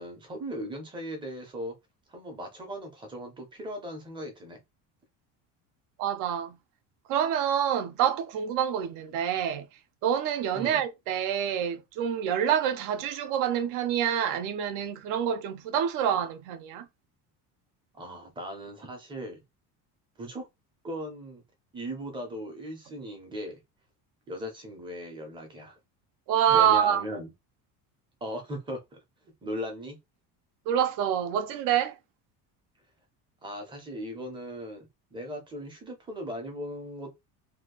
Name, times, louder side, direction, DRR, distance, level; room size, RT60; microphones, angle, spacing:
voice 1, 0.0-1.7 2.1-4.6 10.5-10.8 17.9-19.4 20.2-20.5 20.8-21.4 21.7-23.6 24.3-25.8 26.5-27.3 28.2-28.8 29.4-30.0 33.4-37.2, equal, 15° right, 0.6 m, -38 dB
voice 2, 6.0-6.6 7.1-9.6 10.0-16.8 26.3-27.0 30.7-31.9, right 9 dB, 55° right, 0.6 m, -27 dB
2.7 x 2.4 x 3.7 m
cardioid pair, 175°, 38 cm